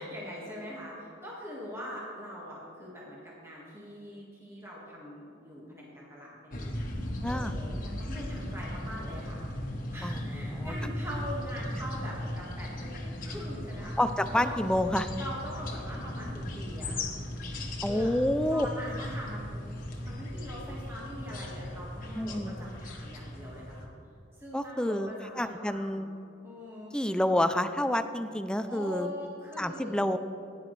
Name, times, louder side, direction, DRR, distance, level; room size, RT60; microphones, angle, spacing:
voice 1, 0.0-6.9 7.2-9.4 9.9-14.0 14.3-14.7 15.2-17.2 17.9-18.1 18.5-23.9 24.3-26.0 26.4-27.0 28.7-29.9, equal, 15° right, -5 dB, 1.8 m, -42 dB
sound 1, 6.5-23.8, left 1 dB, 45° left, 1.4 m, -37 dB
voice 2, 7.2-7.5 10.0-10.2 10.6-10.7 14.0-15.1 17.8-18.7 22.1-22.5 24.5-25.1 25.4-26.1 26.9-29.1 29.6-30.2, left 1 dB, 5° left, 10 dB, 0.4 m, -28 dB
15.5 x 10.5 x 3.3 m, 2.6 s
head